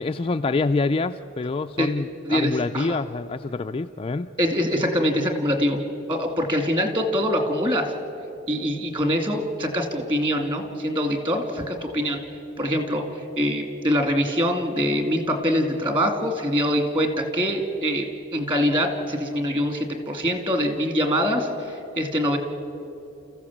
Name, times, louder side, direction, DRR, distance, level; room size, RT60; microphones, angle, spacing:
voice 1, 0.0-4.3, left 3 dB, 30° left, 7 dB, 0.4 m, -26 dB
voice 2, 2.2-3.0 4.4-5.8 6.1-7.9 8.5-12.2 12.6-22.4, equal, 25° right, 5 dB, 2.4 m, -24 dB
29.5 x 15.0 x 7.3 m, 2.8 s
head